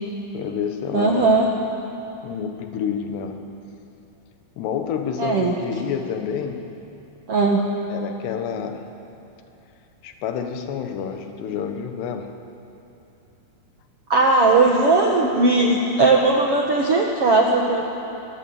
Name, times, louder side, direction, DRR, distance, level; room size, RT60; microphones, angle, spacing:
voice 1, 0.3-1.5 2.2-3.4 4.6-6.6 7.9-8.9 10.0-12.3, left 7 dB, 80° left, 6 dB, 3.4 m, -28 dB
voice 2, 0.9-1.5 5.2-5.5 7.3-7.7 14.1-17.8, right 3 dB, 60° right, 0 dB, 1.5 m, -18 dB
22.5 x 19.5 x 8.8 m, 2.9 s
omnidirectional pair, 4.8 m